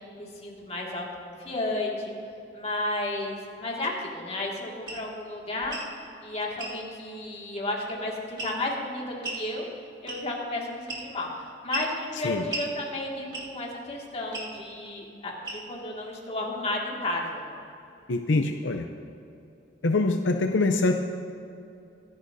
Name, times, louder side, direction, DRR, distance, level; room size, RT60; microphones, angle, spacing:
voice 1, 0.1-2.1 2.5-5.8 6.2-9.7 10.0-17.6, left 2 dB, 35° left, -2 dB, 2.1 m, -33 dB
sound 1, 4.9-5.0 5.6-5.9 6.6-6.8 8.4-8.7 9.2-9.4 10.1-10.4 10.9-11.2 11.7-11.9 12.5-12.7 13.3-13.6 14.3-14.5 15.4-15.8, right 2 dB, 25° right, 2.0 m, -35 dB
voice 2, 18.1-18.9 19.8-21.0, left 2 dB, 80° left, 5 dB, 0.6 m, -24 dB
24.5 x 10.0 x 2.7 m, 2.7 s
head